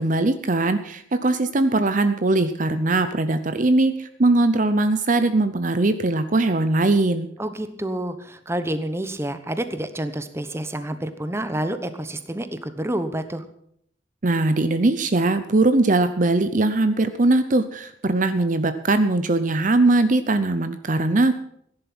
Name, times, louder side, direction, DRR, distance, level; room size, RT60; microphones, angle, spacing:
voice 1, 0.0-7.3 14.2-21.3, right 2 dB, 40° right, 11 dB, 0.7 m, -20 dB
voice 2, 7.4-13.4, right 1 dB, 15° right, 10 dB, 0.9 m, -28 dB
16.0 x 10.5 x 6.1 m, 0.70 s
head